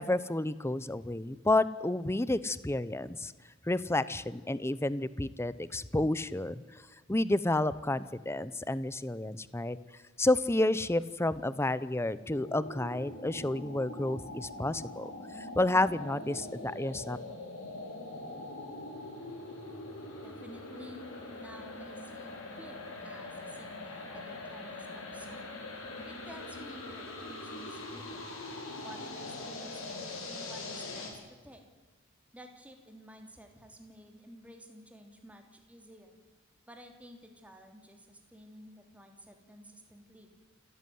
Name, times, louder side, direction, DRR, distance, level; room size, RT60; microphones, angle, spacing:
voice 1, 0.0-3.3 3.7-6.6 7.1-9.8 10.2-17.2, left 2 dB, 15° left, 16 dB, 0.7 m, -30 dB
sound 1, 12.3-31.1, left 2 dB, 90° left, 6.4 m, -43 dB
voice 2, 20.2-21.0 21.4-25.6 26.1-28.3 28.8-31.6 32.3-36.2 36.7-40.3, equal, 5° right, 4 dB, 3.1 m, -52 dB
28.5 x 14.0 x 9.4 m, 1.4 s
head